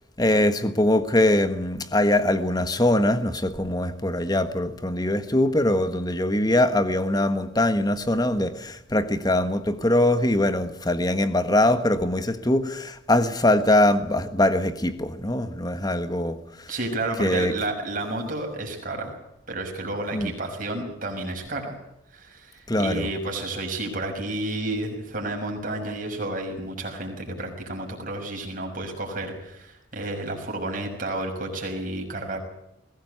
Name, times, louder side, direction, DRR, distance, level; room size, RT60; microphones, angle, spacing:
voice 1, 0.2-16.7 17.2-17.5 20.1-20.3 22.7-23.1, left 1 dB, 20° left, 1.5 m, -22 dB
voice 2, 16.7-19.1 19.5-21.8 22.1-32.4, right 2 dB, 40° right, 6.1 m, -31 dB
21.5 x 17.0 x 8.1 m
head